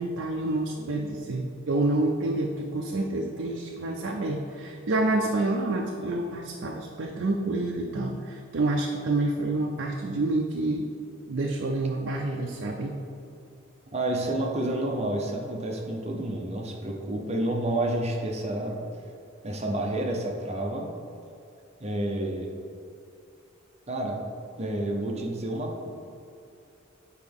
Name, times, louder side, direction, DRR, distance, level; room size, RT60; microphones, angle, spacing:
voice 1, 0.0-10.9 11.3-13.0, right 2 dB, 60° right, 1 dB, 0.5 m, -28 dB
voice 2, 13.9-18.8 19.4-20.9 21.8-22.5 23.9-24.2 24.6-25.9, right 1 dB, 30° right, 0 dB, 0.8 m, -29 dB
8.2 x 4.7 x 3.5 m, 2.6 s
head